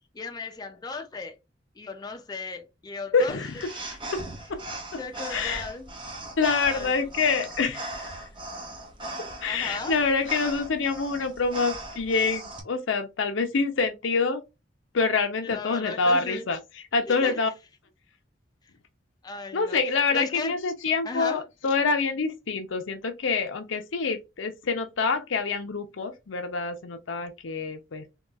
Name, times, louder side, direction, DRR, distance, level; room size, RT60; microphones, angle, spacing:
voice 1, 0.1-1.4 1.8-3.4 5.0-5.9 6.7-7.1 9.5-10.0 15.4-16.5 17.1-17.4 19.2-19.8 20.1-20.5 21.0-21.4, left 3 dB, 20° left, 0.4 m, -36 dB
voice 2, 3.1-4.6 4.9-5.0 5.3-5.6 6.4-8.1 9.2-14.4 14.9-16.6 16.9-17.5 19.5-28.1, left 4 dB, 85° left, 0.6 m, -26 dB
sound 1, 3.3-12.6, right 2 dB, 25° right, 0.7 m, -39 dB
3.7 x 2.3 x 2.3 m
head